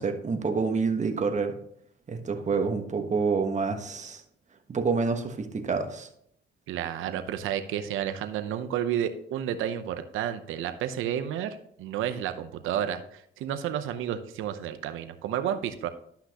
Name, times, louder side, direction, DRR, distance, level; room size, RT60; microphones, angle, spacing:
voice 1, 0.0-1.5 2.1-4.2 4.7-6.1, right 4 dB, 35° right, 5 dB, 1.3 m, -27 dB
voice 2, 6.7-15.9, right 10 dB, 90° right, 9 dB, 0.8 m, -31 dB
12.0 x 5.8 x 2.9 m, 0.68 s
cardioid pair, 90°, 20 cm